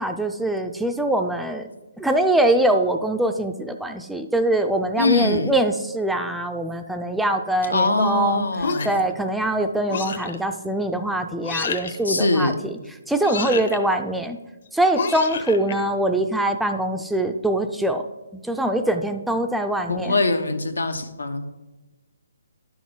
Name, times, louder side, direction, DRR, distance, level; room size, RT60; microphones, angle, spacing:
voice 1, 0.0-1.7 2.0-8.4 8.8-12.5 13.1-14.4 14.7-18.1 18.4-20.1, right 1 dB, ahead, 6 dB, 0.4 m, -23 dB
voice 2, 5.0-5.5 7.7-8.9 12.0-12.6 19.9-21.5, left 3 dB, 90° left, 7 dB, 0.9 m, -22 dB
sound 1, 8.6-9.1 9.9-10.4 11.4-12.0 13.2-13.8 14.9-15.7, left 5 dB, 60° left, 1.0 m, -28 dB
10.5 x 6.2 x 3.8 m, 1.1 s
hypercardioid pair, 150°, 0 cm